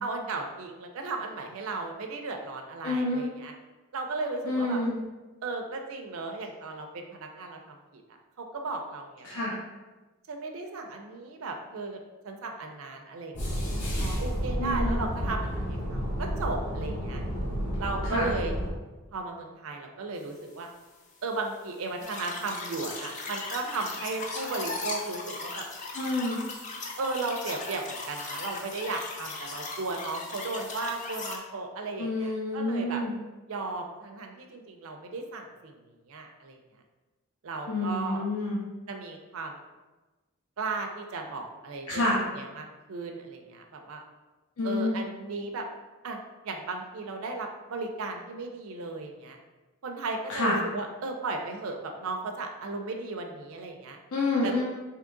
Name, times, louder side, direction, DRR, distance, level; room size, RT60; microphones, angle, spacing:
voice 1, 0.0-3.5 3.9-4.8 5.4-8.0 8.4-9.6 10.3-12.0 12.2-17.2 17.8-18.5 19.1-20.7 21.2-25.6 27.0-33.0 33.5-35.8 36.1-36.6 37.4-38.2 38.9-39.6 40.6-44.0 44.6-45.7 46.0-49.4 49.8-54.0 54.4-54.5, right 3 dB, 70° right, 3 dB, 0.4 m, -35 dB
voice 2, 2.8-3.2 4.4-5.0 9.2-9.5 14.6-15.1 18.0-18.3 25.9-26.4 32.0-33.1 37.7-38.6 41.9-42.2 44.6-45.0 50.3-50.6 54.1-54.6, left 2 dB, 85° left, -5 dB, 0.6 m, -28 dB
sound 1, 13.3-18.7, equal, 55° left, 1.0 m, -31 dB
sound 2, 22.0-31.4, left 3 dB, 35° left, 0.5 m, -38 dB
3.6 x 2.9 x 3.7 m, 1.2 s
head